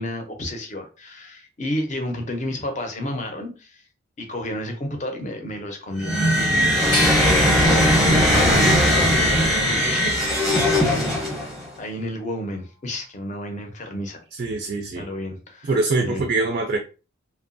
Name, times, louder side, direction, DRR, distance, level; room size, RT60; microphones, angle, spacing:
voice 1, 0.0-3.8 4.2-10.4 10.7-14.2 14.9-15.7 16.0-16.3, left 1 dB, 35° left, 0.5 m, -31 dB
sound 1, 6.0-11.7, equal, ahead, 0.7 m, -19 dB
sound 2, 6.9-9.8 10.4-11.2, left 3 dB, 85° left, 0.7 m, -33 dB
voice 2, 14.4-15.1 15.6-16.8, right 3 dB, 45° right, 0.3 m, -23 dB
2.8 x 2.2 x 2.5 m
head